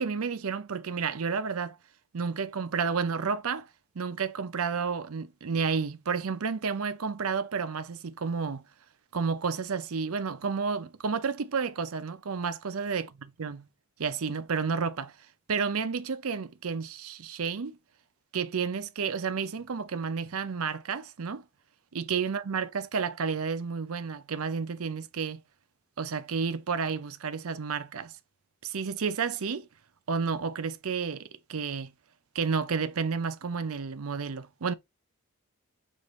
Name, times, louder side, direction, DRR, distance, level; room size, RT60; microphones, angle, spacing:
voice 1, 0.0-1.8 2.1-3.7 4.0-8.7 9.1-13.1 13.4-13.7 14.0-15.1 15.5-17.8 18.3-21.4 21.9-25.4 26.0-28.1 28.6-29.7 30.1-31.9 32.3-34.7, right 5 dB, 75° right, 0.6 m, -31 dB
6.4 x 2.6 x 3.1 m
head